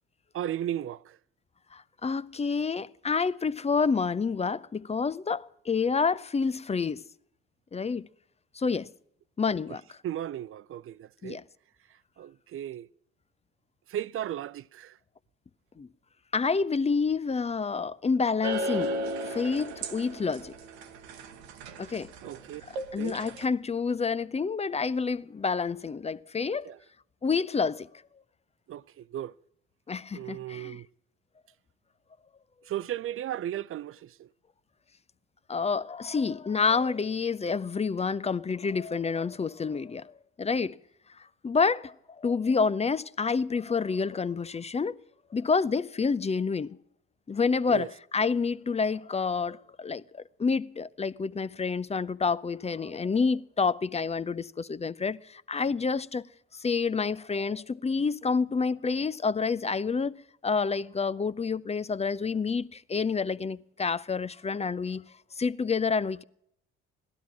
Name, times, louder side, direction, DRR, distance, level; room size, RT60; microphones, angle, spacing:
voice 1, 0.3-1.2 9.7-9.8 10.0-11.4 12.2-12.9 13.9-15.0 22.2-22.6 23.0-23.2 26.6-26.8 28.7-29.3 30.1-30.9 32.6-34.3 47.7-47.9, right 11 dB, 40° right, 0.5 m, -35 dB
voice 2, 1.7-7.0 7.7-8.1 8.5-8.9 9.4-9.8 11.2-11.4 15.8-15.9 16.3-18.9 19.3-20.5 21.8-22.1 22.9-26.7 27.2-27.9 29.9-30.8 35.5-40.1 40.4-40.8 41.4-45.0 45.3-46.8 47.3-56.3 56.5-60.1 60.4-65.1 65.3-66.2, left 5 dB, 20° left, 0.6 m, -28 dB
sound 1, 18.4-23.5, right 1 dB, 80° right, 1.1 m, -35 dB
16.5 x 12.5 x 6.0 m
hypercardioid pair, 50°, 32 cm